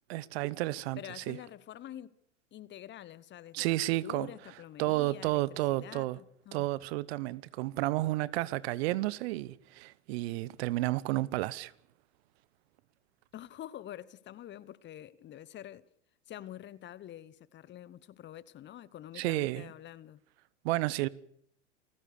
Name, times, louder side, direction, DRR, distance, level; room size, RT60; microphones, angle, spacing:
voice 1, 0.1-1.4 3.5-4.3 4.8-6.2 6.5-11.7 19.2-19.7 20.6-21.1, right 18 dB, 60° right, 1.0 m, -31 dB
voice 2, 1.0-2.1 2.5-6.7 13.3-15.9 16.3-20.2, left 12 dB, 30° left, 1.0 m, -47 dB
29.0 x 15.0 x 6.7 m
hypercardioid pair, 95°, 36 cm